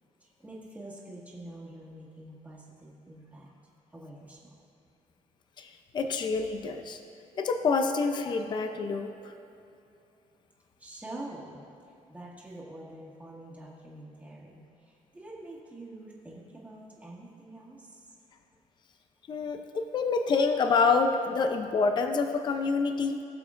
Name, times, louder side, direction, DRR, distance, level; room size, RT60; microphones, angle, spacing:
voice 1, 0.2-3.5 3.9-4.6 10.8-18.1, right 1 dB, 10° right, -5 dB, 1.8 m, -46 dB
voice 2, 5.6-7.0 7.3-9.3 19.3-23.2, left 4 dB, 35° left, 6 dB, 0.5 m, -27 dB
20.0 x 7.2 x 2.5 m, 2.7 s
cardioid pair, 165°, 13 cm